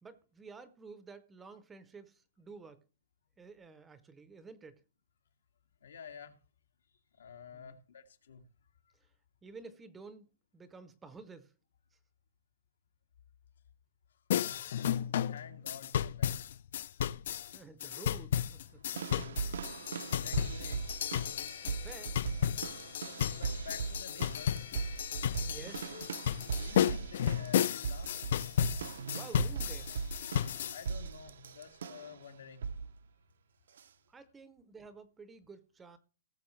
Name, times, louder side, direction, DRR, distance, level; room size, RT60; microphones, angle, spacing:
voice 1, 0.0-2.8 3.4-4.8 7.5-7.7 9.0-9.1 9.4-11.5 17.4-18.8 21.8-22.2 25.5-25.9 29.1-29.9 34.1-36.0, right 4 dB, 10° right, 0.6 m, -51 dB
voice 2, 5.8-6.4 7.1-8.5 14.3-14.6 15.1-16.3 19.6-19.7 20.0-20.8 23.1-24.7 26.5-28.2 30.7-32.7, left 6 dB, 85° left, 2.0 m, -50 dB
sound 1, 14.3-30.8, left 10 dB, 50° left, 0.4 m, -33 dB
sound 2, 19.0-32.2 32.6-33.0 33.8-33.9, right 6 dB, 70° right, 0.6 m, -39 dB
18.5 x 6.7 x 3.2 m
hypercardioid pair, 175°, 0 cm